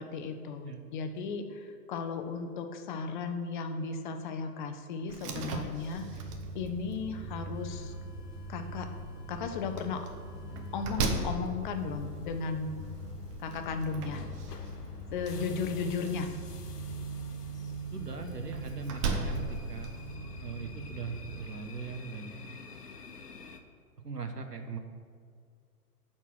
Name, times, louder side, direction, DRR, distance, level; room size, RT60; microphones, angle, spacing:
voice 1, 0.0-6.2 6.5-7.9 8.5-8.9 9.3-10.0 10.7-12.8 13.4-14.2 15.1-16.3, left 5 dB, 30° left, 7 dB, 0.7 m, -35 dB
Slam, 5.1-20.1, right 3 dB, 20° right, 0.6 m, -40 dB
sound 1, 6.0-21.4, right 2 dB, 50° right, 1.7 m, -42 dB
sound 2, 7.5-23.6, left 5 dB, 80° left, 1.0 m, -52 dB
voice 2, 17.9-19.9 20.4-22.3 24.0-24.8, right 5 dB, 90° right, 6 dB, 1.2 m, -40 dB
10.0 x 4.4 x 6.4 m, 2.1 s
figure-of-eight pair, 120°, 47 cm